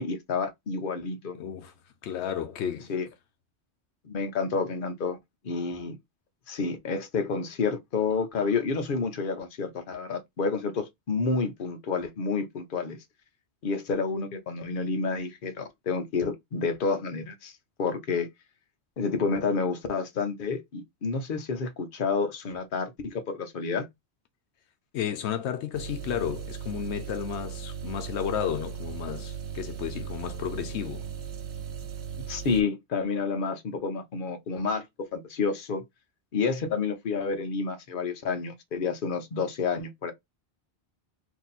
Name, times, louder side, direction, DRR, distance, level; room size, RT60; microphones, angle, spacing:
voice 1, 0.0-1.4 2.9-3.1 4.0-5.2 5.4-6.0 6.5-13.0 13.6-17.5 17.8-18.3 19.0-23.9 32.3-35.8 36.3-40.1, left 4 dB, 55° left, 0.9 m, -29 dB
voice 2, 1.4-1.7 2.0-2.9 24.9-31.1, left 9 dB, 85° left, 0.9 m, -32 dB
sound 1, 25.7-32.6, right 8 dB, 80° right, 1.0 m, -37 dB
2.9 x 2.6 x 4.0 m
omnidirectional pair, 1.1 m